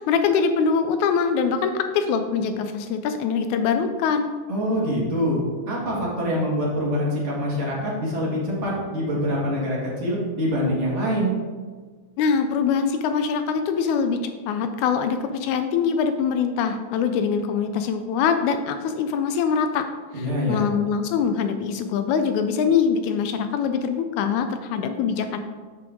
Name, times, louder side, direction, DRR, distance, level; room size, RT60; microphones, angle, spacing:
voice 1, 0.0-4.3 12.2-19.8 20.2-25.4, left 6 dB, 80° left, 8 dB, 1.9 m, -23 dB
voice 2, 4.5-11.3 20.1-20.7, equal, 30° right, -5 dB, 1.7 m, -25 dB
7.7 x 6.1 x 3.6 m, 1.5 s
omnidirectional pair, 3.5 m